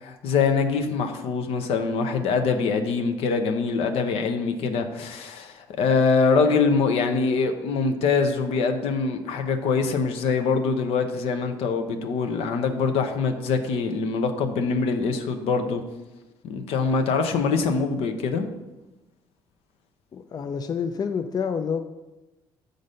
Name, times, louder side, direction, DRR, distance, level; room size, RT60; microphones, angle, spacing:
voice 1, 0.0-15.8 16.4-18.5, left 4 dB, 75° left, 6 dB, 0.8 m, -24 dB
voice 2, 20.1-21.8, left 6 dB, 40° left, 8 dB, 0.4 m, -28 dB
6.5 x 4.0 x 5.2 m, 1.0 s
supercardioid pair, 70°, 10 cm